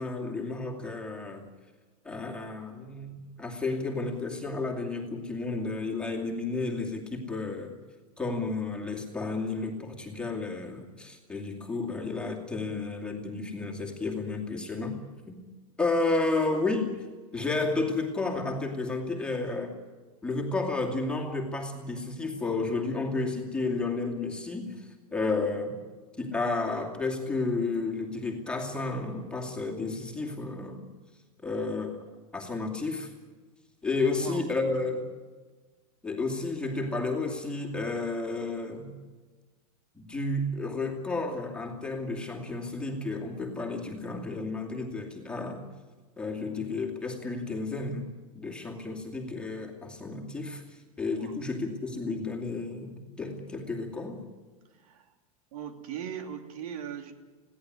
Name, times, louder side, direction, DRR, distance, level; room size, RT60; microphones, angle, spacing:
voice 1, 0.0-1.5 2.0-7.7 8.2-15.0 15.3-15.4 15.8-17.1 17.3-19.7 20.2-25.8 26.2-30.8 31.4-32.0 32.3-33.1 33.8-35.0 36.0-38.9 39.9-45.6 46.2-48.1 48.3-54.2, left 3 dB, 5° left, 0 dB, 2.5 m, -32 dB
voice 2, 54.7-55.1 55.5-57.2, right 9 dB, 75° right, 6 dB, 2.8 m, -39 dB
21.0 x 17.0 x 9.8 m, 1.4 s
supercardioid pair, 165°, 19 cm